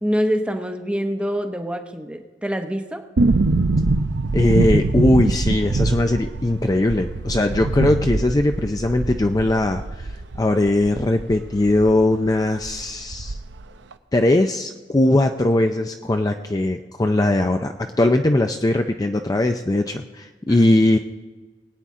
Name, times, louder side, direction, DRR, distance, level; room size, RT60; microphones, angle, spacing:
voice 1, 0.0-3.0 20.5-20.6, equal, 5° right, 6 dB, 0.8 m, -25 dB
sound 1, 3.2-12.0 12.3-12.4 12.6-13.7 13.9-14.0, right 3 dB, 80° right, 0.6 m, -23 dB
voice 2, 4.3-13.4 14.1-21.0, left 1 dB, 20° left, 5 dB, 0.4 m, -20 dB
21.0 x 8.9 x 3.6 m, 1.3 s
head